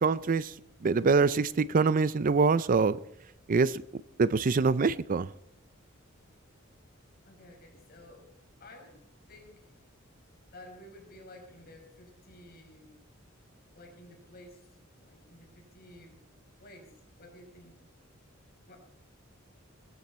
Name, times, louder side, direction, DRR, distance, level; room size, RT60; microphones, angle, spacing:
voice 1, 0.0-0.5 0.8-3.0 3.5-3.8 4.2-5.3, right 4 dB, 40° right, 0.5 m, -24 dB
voice 2, 7.3-8.3 8.6-9.0 9.3-9.7 10.5-12.9 13.7-16.2 16.6-16.9 17.2-17.8 18.7-18.8, left 1 dB, 50° left, 5.5 m, -52 dB
20.0 x 14.0 x 4.3 m
head